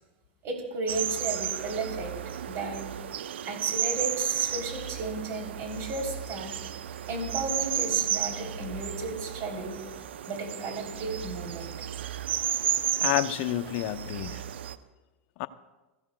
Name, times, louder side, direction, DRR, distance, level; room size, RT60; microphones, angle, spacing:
voice 1, 0.4-2.2 2.4-2.9 3.4-6.6 7.1-9.8 10.3-11.8, right 3 dB, 45° right, 3.5 m, -34 dB
sound 1, 0.9-14.8, right 10 dB, 75° right, 0.6 m, -33 dB
voice 2, 13.0-14.4 15.4-15.5, left 15 dB, 55° left, 0.7 m, -29 dB
22.0 x 15.0 x 2.3 m
hypercardioid pair, 100°, 6 cm